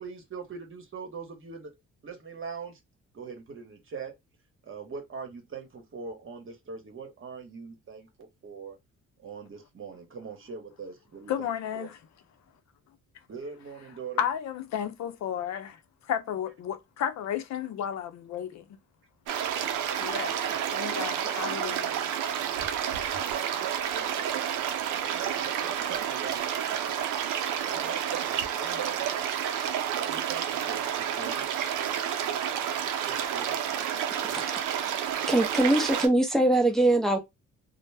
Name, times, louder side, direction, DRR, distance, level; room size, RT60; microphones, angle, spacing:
voice 1, 0.0-1.7 2.0-2.8 3.1-4.1 4.7-8.8 9.2-11.9 13.3-14.3 20.2-20.6 21.0-21.6 23.1-26.5 27.7-29.1 30.0-31.5 33.0-33.6, right 6 dB, 45° right, 1.0 m, -41 dB
voice 2, 11.3-12.0 14.2-18.7 20.0-20.3 20.7-21.9, left 9 dB, 65° left, 0.5 m, -33 dB
sound 1, 19.3-36.1, right 9 dB, 85° right, 0.5 m, -30 dB
voice 3, 34.1-34.5 35.3-37.2, right 1 dB, ahead, 0.5 m, -23 dB
2.1 x 2.0 x 3.3 m
cardioid pair, 90°, 30 cm